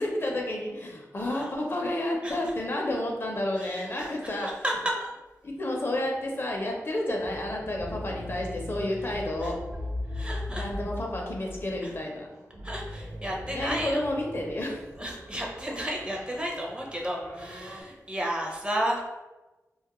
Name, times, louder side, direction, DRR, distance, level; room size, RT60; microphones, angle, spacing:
voice 1, 0.0-4.5 5.4-9.6 10.5-12.3 13.4-14.8, left 1 dB, 45° left, 0 dB, 0.5 m, -30 dB
voice 2, 3.6-4.1 4.4-4.7 5.0-5.1 10.1-10.7 11.8-11.9 12.6-14.0 15.0-19.0, right 1 dB, 20° right, -1 dB, 0.5 m, -33 dB
sound 1, 6.1-17.8, left 1 dB, 80° right, 0.7 m, -40 dB
2.2 x 2.1 x 2.9 m, 1.1 s
wide cardioid pair, 75°, 6 cm